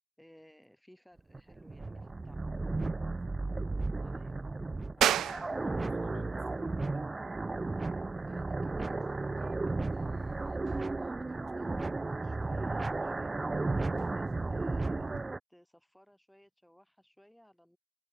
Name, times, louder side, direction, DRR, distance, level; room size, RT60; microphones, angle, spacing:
voice 1, 0.2-2.4 4.0-4.4 7.8-15.1 15.5-17.8, equal, 5° left, 3.9 m, -61 dB
sound 1, 1.2-15.4, right 3 dB, 25° right, 0.5 m, -34 dB
voice 2, 5.0-7.1, left 11 dB, 75° left, 7.3 m, -56 dB
sound 2, 5.0-15.2, right 11 dB, 75° right, 1.1 m, -38 dB
cardioid pair, 75°, 0 cm